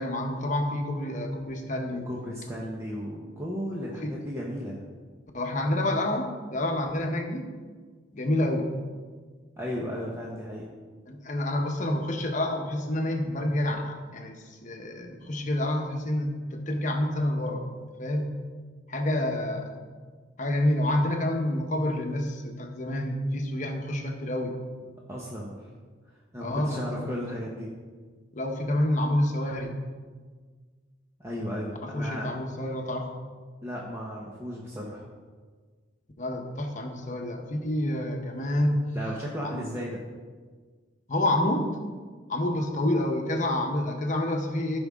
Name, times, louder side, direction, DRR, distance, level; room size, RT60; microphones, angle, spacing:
voice 1, 0.0-2.1 4.0-4.2 5.3-7.5 8.1-8.7 11.1-18.3 18.9-19.7 20.4-24.6 26.4-27.1 28.3-29.7 31.8-33.1 36.2-38.8 39.4-39.6 41.1-41.7 42.3-44.8, left 1 dB, 40° left, 3 dB, 1.1 m, -28 dB
voice 2, 1.9-4.8 9.6-10.7 25.1-25.7 26.3-27.7 31.2-32.3 33.6-35.0 38.9-40.0, equal, 15° right, -4 dB, 1.0 m, -35 dB
15.5 x 5.4 x 3.6 m, 1.5 s
head